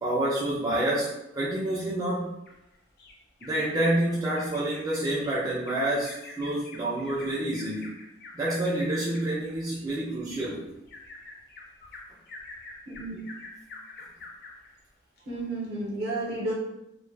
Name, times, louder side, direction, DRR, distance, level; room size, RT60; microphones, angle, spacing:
voice 1, 0.0-2.4 3.4-7.9 8.3-10.7, right 1 dB, 20° right, -6 dB, 0.3 m, -28 dB
Bird vocalization bird call bird song, 2.5-3.6 3.9-4.1 4.4-14.7 15.2-15.3 15.6-15.7, left 3 dB, 55° left, 0.5 m, -47 dB
voice 2, 12.9-13.2 15.3-16.5, right 2 dB, 55° right, -3 dB, 0.7 m, -32 dB
2.1 x 2.0 x 3.2 m, 0.84 s
head